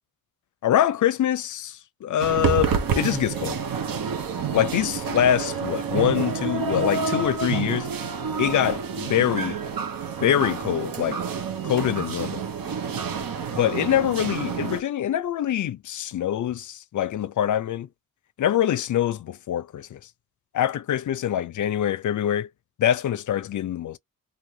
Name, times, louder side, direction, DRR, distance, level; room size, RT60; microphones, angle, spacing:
voice 1, 0.6-3.6 4.5-7.9 8.4-9.6 10.2-11.2 11.6-12.4 13.5-17.9 18.4-20.0 20.5-22.5 22.8-24.0, left 11 dB, 60° left, 0.5 m, -24 dB
sound 1, 2.2-14.8, right 6 dB, 70° right, 0.8 m, -28 dB
2.7 x 2.6 x 3.1 m
wide cardioid pair, 125°, 35 cm